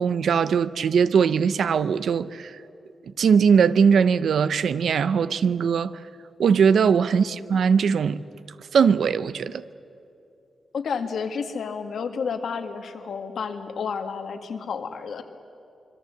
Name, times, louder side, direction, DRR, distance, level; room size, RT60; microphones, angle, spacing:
voice 1, 0.0-2.6 3.2-6.0 6.4-8.2 8.7-9.6, right 6 dB, 80° right, 0.7 m, -20 dB
voice 2, 10.7-15.2, left 6 dB, 75° left, 1.9 m, -31 dB
25.5 x 23.0 x 8.1 m
cardioid pair, 100°, 0 cm